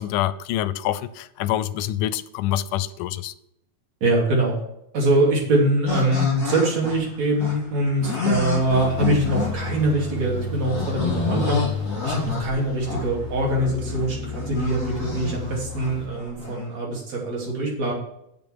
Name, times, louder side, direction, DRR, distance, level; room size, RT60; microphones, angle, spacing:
voice 1, 0.0-3.3, left 12 dB, 90° left, 2.1 m, -26 dB
voice 2, 4.0-4.6 4.9-11.6 12.0-17.9, right 1 dB, 60° right, 4.1 m, -23 dB
sound 1, 5.9-16.6, left 4 dB, 55° left, 6.0 m, -30 dB
sound 2, 8.3-16.1, left 3 dB, 40° right, 3.0 m, -32 dB
9.5 x 7.9 x 4.7 m
omnidirectional pair, 3.6 m